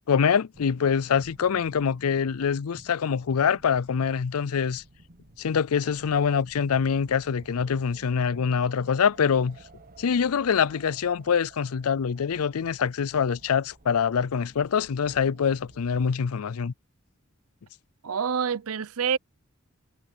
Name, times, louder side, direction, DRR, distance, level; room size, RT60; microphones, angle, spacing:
voice 1, 0.1-4.8 5.4-9.6 10.0-16.7, left 6 dB, 80° left, 0.5 m, -25 dB
sound 1, 0.5-16.2, right 2 dB, 45° right, 1.4 m, -53 dB
voice 2, 18.0-19.2, right 7 dB, 75° right, 0.7 m, -27 dB
head